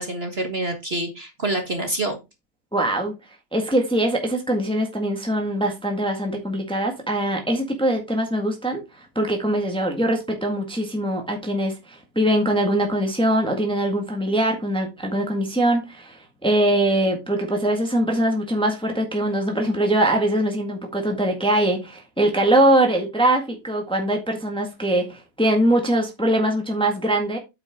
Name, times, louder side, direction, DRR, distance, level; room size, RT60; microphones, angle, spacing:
voice 1, 0.0-2.2, right 2 dB, 40° right, 1.7 m, -27 dB
voice 2, 2.7-3.1 3.5-8.8 9.1-27.4, right 1 dB, 5° left, 1.6 m, -22 dB
8.7 x 6.0 x 3.7 m
omnidirectional pair, 1.8 m